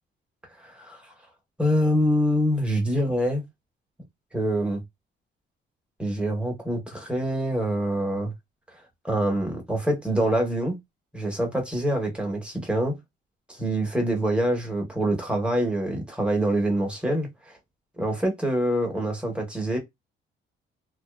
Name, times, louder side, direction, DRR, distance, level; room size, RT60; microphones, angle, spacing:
voice 1, 0.6-1.0 1.6-3.4 4.3-4.8 6.0-8.3 9.0-10.8 11.1-13.0 13.5-17.5 18.0-19.8, right 1 dB, 5° right, 0.9 m, -25 dB
2.5 x 2.3 x 2.2 m
cardioid pair, 90°, 20 cm